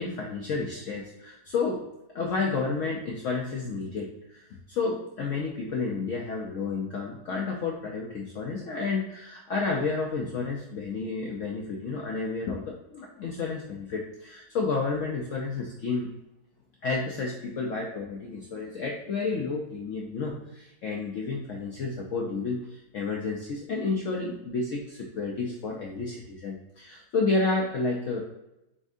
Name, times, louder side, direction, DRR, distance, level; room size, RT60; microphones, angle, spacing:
voice 1, 0.0-1.8 2.1-16.1 16.8-28.2, left 4 dB, 75° left, -1 dB, 0.7 m, -31 dB
4.2 x 3.5 x 2.6 m, 0.90 s
omnidirectional pair, 1.9 m